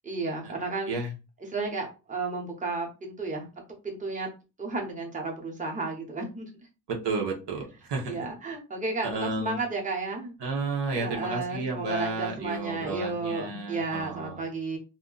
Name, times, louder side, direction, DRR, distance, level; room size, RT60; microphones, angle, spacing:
voice 1, 0.0-0.9 1.5-3.5 3.8-4.3 4.6-6.5 8.1-10.3 11.0-14.8, right 3 dB, 20° right, 0 dB, 0.8 m, -32 dB
voice 2, 6.9-8.2 9.0-9.6 10.4-14.5, right 3 dB, 85° right, 0 dB, 1.0 m, -32 dB
2.6 x 2.2 x 3.8 m, 0.30 s
wide cardioid pair, 145°, 40 cm